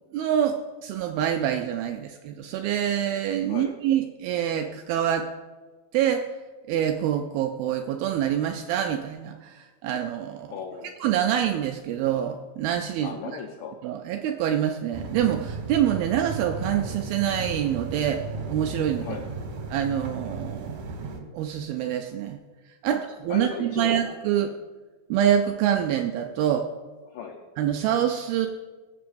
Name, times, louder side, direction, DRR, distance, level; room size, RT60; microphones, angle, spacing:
voice 1, 0.1-5.3 5.9-6.3 6.7-10.5 11.0-13.2 13.8-18.2 18.5-19.2 19.7-20.8 21.3-22.4 22.8-23.0 23.2-24.5 25.1-26.7 27.6-28.5, right 10 dB, 85° right, 4 dB, 2.1 m, -26 dB
voice 2, 10.5-10.9 13.0-13.8 19.0-19.3 22.9-23.0 23.3-24.0 27.1-27.4, left 6 dB, 85° left, 3 dB, 1.8 m, -36 dB
sound 1, 14.9-21.2, right 4 dB, 60° right, 2.2 m, -35 dB
21.0 x 7.6 x 2.6 m, 1.3 s
omnidirectional pair, 4.7 m